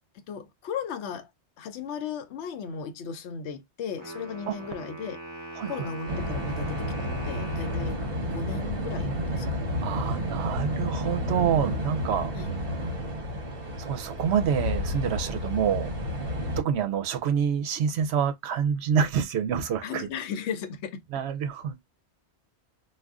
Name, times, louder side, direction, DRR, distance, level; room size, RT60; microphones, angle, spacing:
voice 1, 0.1-1.3 1.6-5.2 5.7-8.0 8.3-9.7 12.3-12.5 19.8-21.0, left 6 dB, 80° left, 0.9 m, -36 dB
Wind instrument woodwind instrument, 4.0-9.0, right 2 dB, 20° right, 1.0 m, -41 dB
voice 2, 5.6-5.9 9.8-12.3 13.8-15.9 16.4-20.1 21.1-21.8, right 7 dB, 75° right, 0.8 m, -27 dB
sound 1, 6.1-16.6, left 1 dB, 60° right, 1.1 m, -31 dB
2.4 x 2.3 x 3.5 m
omnidirectional pair, 1.1 m